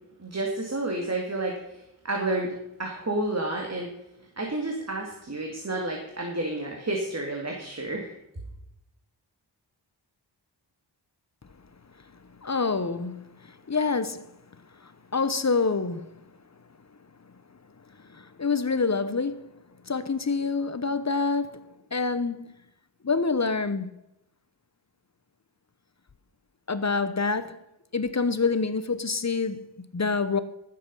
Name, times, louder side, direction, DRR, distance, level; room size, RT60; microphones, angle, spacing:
voice 1, 0.2-3.9 4.4-8.1, right 2 dB, 35° right, 2.4 m, -30 dB
voice 2, 12.4-14.3 14.8-16.1 18.1-19.4 19.9-21.6 21.9-22.4 23.0-23.9 26.7-27.6 27.9-30.4, left 4 dB, 35° left, 1.0 m, -27 dB
14.0 x 7.8 x 5.5 m
wide cardioid pair, 60°, 45 cm